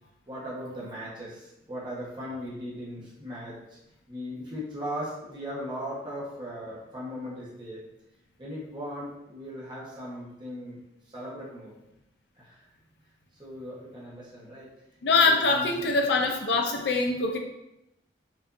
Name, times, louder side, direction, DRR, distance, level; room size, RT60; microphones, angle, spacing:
voice 1, 0.3-3.6 4.1-7.8 8.4-10.8 11.1-11.7 12.4-12.6 13.4-14.7 15.2-15.9, equal, 25° right, -7 dB, 1.0 m, -38 dB
voice 2, 15.0-17.4, left 3 dB, 65° left, 4 dB, 0.5 m, -23 dB
4.7 x 2.6 x 2.5 m, 0.86 s
head